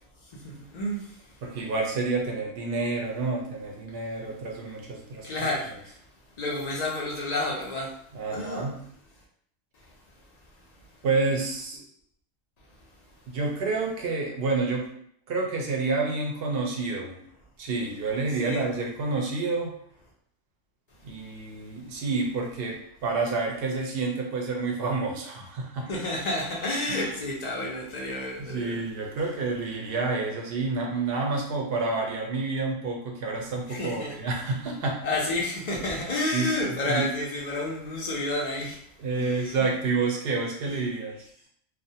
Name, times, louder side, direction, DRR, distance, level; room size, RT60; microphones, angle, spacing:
voice 1, 0.3-1.4 4.0-4.3 4.6-4.7 5.2-6.0 6.4-8.0 8.3-8.7 9.7-9.9 10.6-11.0 18.4-18.6 25.9-28.8 29.2-29.3 33.7-34.2 35.0-38.8 39.1-39.7, left 2 dB, 70° left, -3 dB, 0.4 m, -31 dB
voice 2, 1.4-5.3 8.1-8.8 11.0-11.8 13.3-14.9 15.3-17.2 17.6-19.7 21.0-25.9 26.9-27.1 28.4-35.0 36.3-36.5 36.8-37.1 39.0-41.2, right 3 dB, 60° right, 0 dB, 0.7 m, -29 dB
2.4 x 2.1 x 2.7 m, 0.66 s
omnidirectional pair, 1.3 m